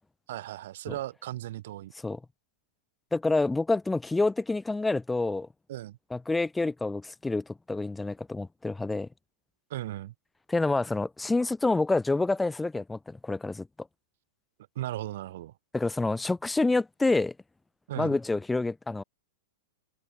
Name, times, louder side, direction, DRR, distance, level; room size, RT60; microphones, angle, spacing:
voice 1, 0.3-1.9 5.7-6.0 9.7-10.1 14.7-15.5 17.9-18.2, right 14 dB, 65° right, 1.6 m, -36 dB
voice 2, 3.1-5.5 6.1-9.1 10.5-13.7 15.7-17.3 18.0-19.0, left 3 dB, 5° left, 1.1 m, -27 dB
hypercardioid pair, 125°, 0 cm